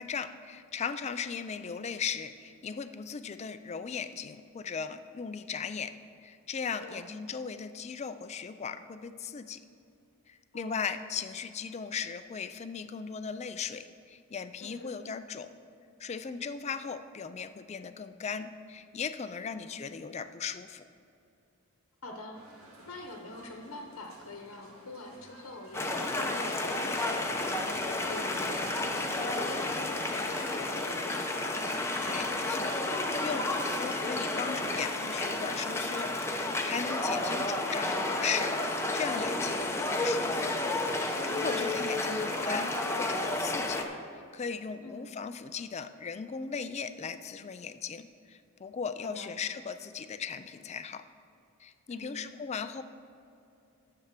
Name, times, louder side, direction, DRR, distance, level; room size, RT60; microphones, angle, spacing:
voice 1, 0.0-5.9 6.2-9.6 10.3-15.5 16.0-20.9 32.0-32.8 33.2-40.6 41.3-43.9 44.3-51.0 51.6-52.8, left 6 dB, 30° left, 11 dB, 0.4 m, -37 dB
voice 2, 1.2-1.6 6.8-7.1 10.5-10.8 14.6-15.0 19.4-19.8 22.0-22.6 22.8-31.5 39.5-39.8 41.4-41.7 44.8-45.1 49.0-49.3 51.9-52.3, left 2 dB, 70° left, 2 dB, 0.9 m, -46 dB
sound 1, 22.3-30.5, right 1 dB, 65° right, 2.3 m, -53 dB
sound 2, 25.7-43.8, left 2 dB, 10° left, 0.8 m, -31 dB
10.5 x 6.9 x 5.9 m, 2.6 s
head